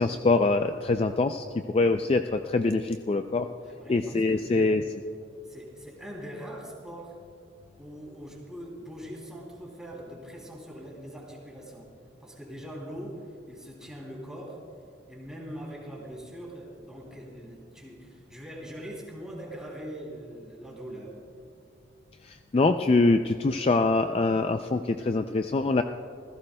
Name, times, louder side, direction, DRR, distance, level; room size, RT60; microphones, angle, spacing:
voice 1, 0.0-3.5 3.9-4.8 22.2-25.8, left 3 dB, 30° left, 7 dB, 0.3 m, -24 dB
voice 2, 3.6-4.7 5.4-7.2 7.8-11.9 12.2-14.6 15.1-21.2, equal, 5° right, -3 dB, 2.9 m, -42 dB
27.0 x 16.0 x 2.2 m, 2.4 s
head